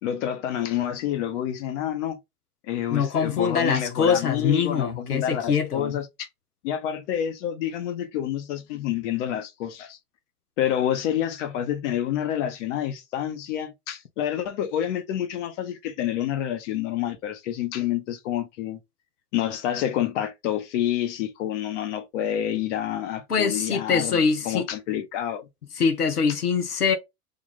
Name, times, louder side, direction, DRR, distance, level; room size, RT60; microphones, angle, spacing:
voice 1, 0.0-2.2 2.6-6.3 6.6-10.0 10.6-18.8 19.3-25.5, left 11 dB, 50° left, 1.1 m, -28 dB
voice 2, 2.9-6.0 23.3-24.7 25.8-27.0, left 6 dB, 90° left, 1.0 m, -23 dB
3.6 x 2.6 x 3.4 m
hypercardioid pair, 100°, 45 cm